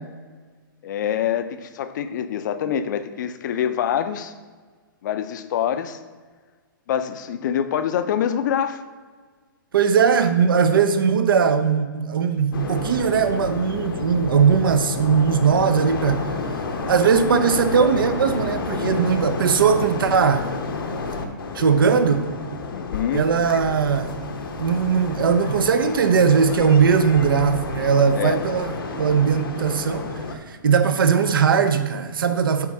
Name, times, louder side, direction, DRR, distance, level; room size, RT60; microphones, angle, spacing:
voice 1, 0.8-4.3 5.0-6.0 6.9-8.8 17.1-17.4 22.7-23.3 28.1-28.4, left 9 dB, 55° left, 10 dB, 0.6 m, -25 dB
voice 2, 9.7-16.3 16.9-20.5 21.5-22.3 23.1-24.1 24.6-30.1 30.5-32.7, right 6 dB, 75° right, 8 dB, 0.7 m, -19 dB
sound 1, 12.5-30.4, left 3 dB, 80° left, 1.0 m, -30 dB
8.3 x 3.0 x 4.7 m, 1.5 s
hypercardioid pair, 130°, 12 cm